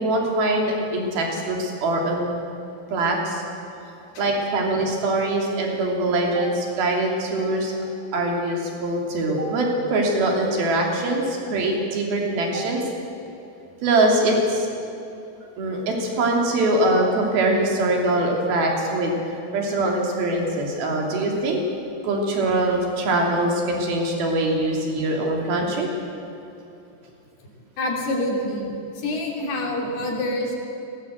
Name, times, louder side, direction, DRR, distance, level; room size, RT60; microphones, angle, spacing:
voice 1, 0.0-2.3 2.9-3.4 4.2-7.7 8.1-12.9 13.8-14.7 15.6-21.6 22.0-25.9, right 2 dB, 65° right, 0 dB, 4.8 m, -23 dB
voice 2, 27.8-30.5, left 1 dB, 75° left, -1 dB, 5.2 m, -27 dB
20.0 x 17.5 x 8.0 m, 2.8 s
omnidirectional pair, 4.7 m